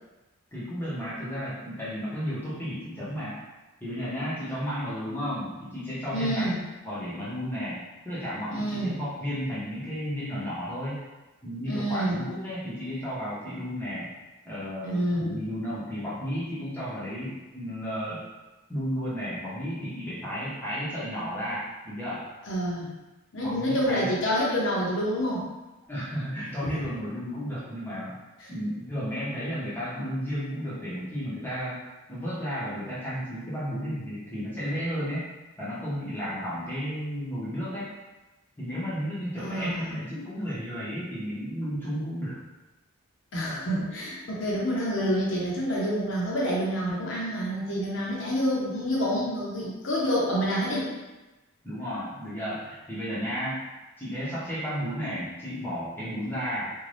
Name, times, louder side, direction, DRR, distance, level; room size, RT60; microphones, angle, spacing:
voice 1, 0.5-3.4 3.8-6.5 6.8-7.8 8.0-11.0 11.4-14.1 14.4-18.2 18.7-22.2 23.4-24.1 25.9-28.1 28.5-35.2 35.6-37.9 38.6-42.4 51.6-53.6 54.0-56.7, equal, 10° left, -10 dB, 0.7 m, -33 dB
voice 2, 6.1-6.6 8.5-9.0 11.6-12.2 14.8-15.4 22.5-22.9 23.3-25.5 26.6-26.8 28.4-28.5 39.4-40.0 43.3-50.9, equal, 55° left, -5 dB, 0.7 m, -28 dB
2.6 x 2.2 x 3.2 m, 1.1 s
head